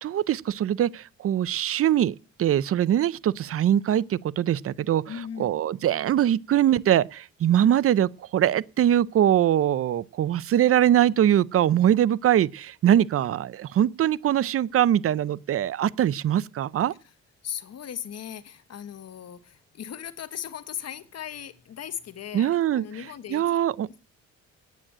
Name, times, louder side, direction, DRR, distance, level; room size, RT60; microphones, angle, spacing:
voice 1, 0.0-5.0 5.4-16.9 22.3-22.8 23.3-23.9, right 11 dB, 50° right, 0.6 m, -22 dB
voice 2, 5.1-5.5 17.4-23.6, left 9 dB, 55° left, 1.3 m, -38 dB
9.3 x 8.8 x 8.7 m
cardioid pair, 90°, 30 cm